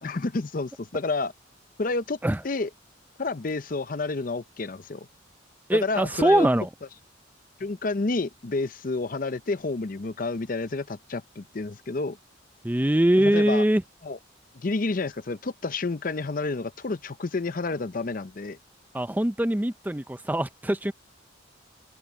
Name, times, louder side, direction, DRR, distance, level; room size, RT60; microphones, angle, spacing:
voice 1, 0.0-1.3 1.8-2.2 2.4-2.7 3.2-5.1 5.7-6.5 7.6-12.2 13.2-13.6 14.0-14.2 14.6-18.6, left 3 dB, 45° left, 0.6 m, -29 dB
voice 2, 5.7-6.7 12.6-13.8 18.9-20.9, right 1 dB, 10° right, 0.5 m, -22 dB
open air
head